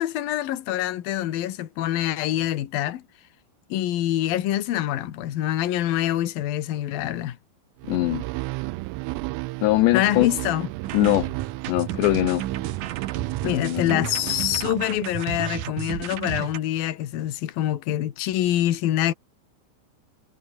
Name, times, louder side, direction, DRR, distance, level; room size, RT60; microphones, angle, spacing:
voice 1, 0.0-3.0 3.7-7.4 9.9-10.7 13.4-19.1, left 13 dB, 60° left, 2.8 m, -25 dB
sound 1, 7.8-15.3, right 23 dB, 85° right, 3.2 m, -33 dB
voice 2, 7.9-8.2 9.6-10.3 10.9-11.3 11.7-12.4 13.5-14.1, left 18 dB, 75° left, 2.6 m, -22 dB
sound 2, 10.8-16.6, right 12 dB, 70° right, 2.1 m, -33 dB
omnidirectional pair, 5.8 m